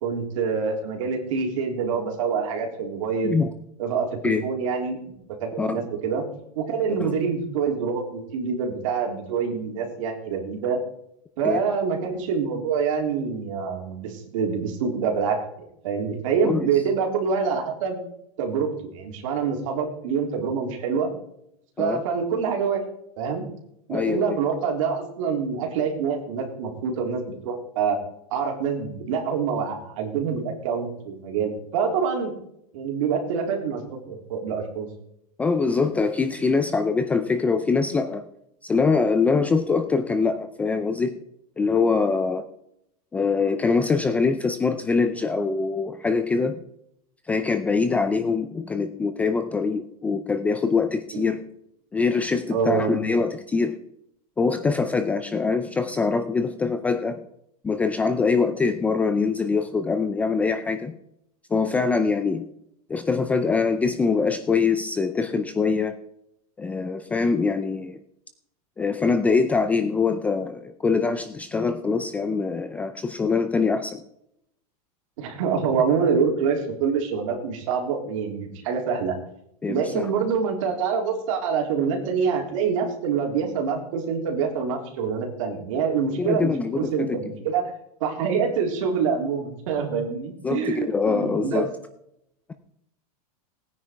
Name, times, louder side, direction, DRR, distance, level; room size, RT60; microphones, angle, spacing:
voice 1, 0.0-3.4 3.8-5.0 5.4-6.2 6.6-10.8 11.4-18.0 18.4-21.1 21.8-22.8 23.2-23.5 23.9-28.0 28.3-32.3 32.7-34.9 51.1-51.2 52.5-53.0 75.2-79.2 79.7-87.7 88.0-91.6, right 6 dB, 55° right, 2 dB, 3.8 m, -26 dB
voice 2, 23.9-24.4 35.4-38.3 38.6-41.2 41.6-42.4 43.1-46.6 47.3-51.4 51.9-53.8 54.4-57.2 57.6-61.0 61.5-62.5 62.9-66.0 66.6-68.0 68.8-74.0 79.6-80.1 86.2-87.2 90.4-91.7, left 4 dB, 5° left, 9 dB, 0.4 m, -23 dB
18.0 x 9.7 x 4.7 m, 0.76 s
supercardioid pair, 170°, 20 cm